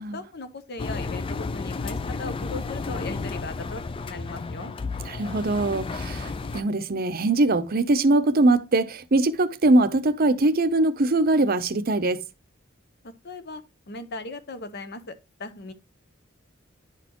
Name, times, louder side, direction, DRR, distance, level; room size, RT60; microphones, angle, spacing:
voice 1, 0.1-4.7 13.0-15.1 15.4-15.7, left 3 dB, 55° left, 0.8 m, -38 dB
Engine, 0.8-6.6, left 4 dB, 25° left, 0.4 m, -32 dB
voice 2, 5.0-12.2, right 2 dB, 50° right, 0.7 m, -22 dB
10.5 x 4.2 x 3.0 m
head